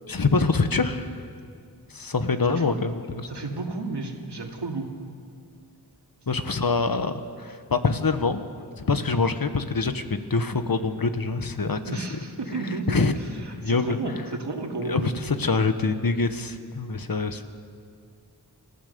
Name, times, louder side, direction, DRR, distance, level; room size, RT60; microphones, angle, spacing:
voice 1, 0.1-1.1 1.9-3.3 6.3-8.4 8.8-11.8 12.9-13.1 13.5-14.0 14.8-17.5, left 4 dB, 60° left, 9 dB, 1.3 m, -25 dB
voice 2, 3.3-4.9 11.9-15.1, right 3 dB, 90° right, 2 dB, 2.4 m, -32 dB
29.0 x 14.5 x 6.8 m, 2.3 s
wide cardioid pair, 70°, 40 cm